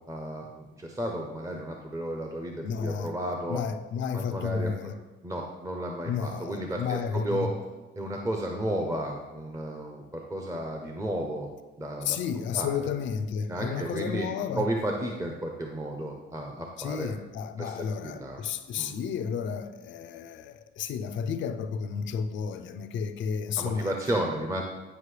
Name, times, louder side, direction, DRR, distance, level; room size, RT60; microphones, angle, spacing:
voice 1, 0.1-3.6 4.1-4.7 5.2-7.5 7.9-11.5 11.8-12.2 12.5-12.9 13.5-14.3 14.6-17.1 17.6-18.4 18.8-18.9 23.6-24.6, right 1 dB, 15° right, 1 dB, 0.8 m, -33 dB
voice 2, 2.6-3.2 3.5-4.9 6.0-7.5 12.0-14.6 16.8-23.9, left 7 dB, 75° left, 10 dB, 0.6 m, -32 dB
9.6 x 5.3 x 3.3 m, 1.2 s
cardioid pair, 115°, 19 cm